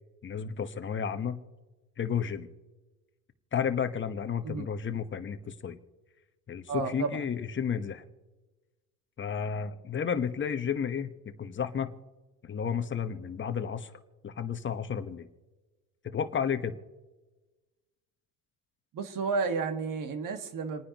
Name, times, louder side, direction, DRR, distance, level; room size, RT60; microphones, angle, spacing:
voice 1, 0.2-1.4 2.0-2.5 3.5-5.8 6.5-8.0 9.2-11.9 12.4-13.9 14.2-15.3 16.0-16.7, left 7 dB, 25° left, 9 dB, 1.2 m, -32 dB
voice 2, 6.7-7.2 18.9-20.8, right 4 dB, 50° right, 8 dB, 1.8 m, -32 dB
29.0 x 9.8 x 3.0 m, 1.2 s
supercardioid pair, 105°, 43 cm